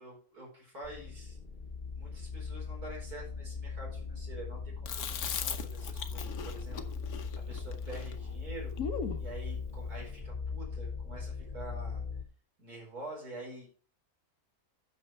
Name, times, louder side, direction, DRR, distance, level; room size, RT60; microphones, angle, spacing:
voice 1, 0.0-1.4 1.9-8.8 9.2-12.0 12.6-13.7, right 2 dB, 85° right, -3 dB, 5.4 m, -47 dB
sound 1, 0.8-12.2, left 5 dB, 30° left, 1.1 m, -39 dB
Chewing mastication, 4.9-9.3, left 6 dB, 75° left, 1.5 m, -39 dB
9.3 x 6.5 x 5.9 m, 0.41 s
omnidirectional pair, 1.6 m